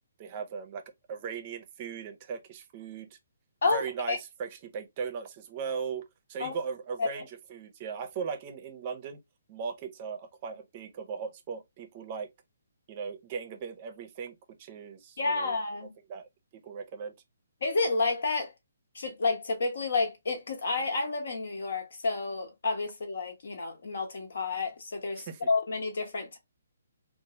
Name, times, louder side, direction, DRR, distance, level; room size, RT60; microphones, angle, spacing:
voice 1, 0.2-3.2 3.6-9.2 9.5-12.3 12.9-15.5 16.1-17.1 25.1-25.4, right 6 dB, 35° right, 0.5 m, -38 dB
voice 2, 3.6-4.2 6.4-6.5 7.0-7.2 15.2-15.9 17.6-18.5 18.9-26.4, left 3 dB, 65° left, 1.0 m, -30 dB
3.0 x 2.0 x 2.8 m
figure-of-eight pair, 140°, 0 cm